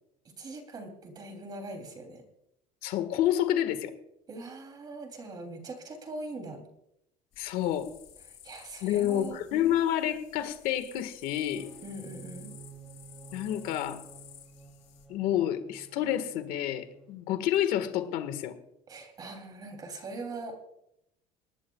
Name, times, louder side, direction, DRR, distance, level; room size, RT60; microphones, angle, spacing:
voice 1, 0.2-2.2 4.3-6.6 8.4-9.4 11.8-12.6 18.9-20.6, right 2 dB, 25° right, 4 dB, 3.0 m, -41 dB
voice 2, 2.8-3.9 7.4-7.9 8.8-11.7 13.3-14.0 15.1-18.5, left 11 dB, 70° left, 9 dB, 1.6 m, -29 dB
sound 1, 7.3-15.1, left 10 dB, 45° left, 4.0 m, -53 dB
sound 2, 11.3-17.3, right 5 dB, ahead, 1.9 m, -51 dB
19.5 x 19.5 x 2.3 m, 0.81 s
cardioid pair, 175°, 15 cm